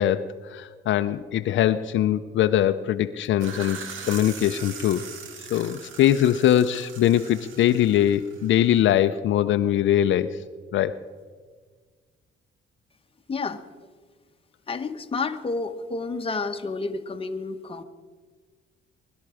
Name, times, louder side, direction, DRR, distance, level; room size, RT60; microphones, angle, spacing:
voice 1, 0.0-3.8 4.1-5.0 5.5-10.4 10.7-10.9, left 11 dB, 70° left, 10 dB, 0.6 m, -22 dB
sound 1, 3.2-8.8, right 6 dB, 80° right, 1.7 m, -40 dB
voice 2, 13.3-13.6 14.7-17.8, left 3 dB, 30° left, 6 dB, 1.1 m, -30 dB
20.0 x 12.0 x 4.9 m, 1.5 s
cardioid pair, 90°, 20 cm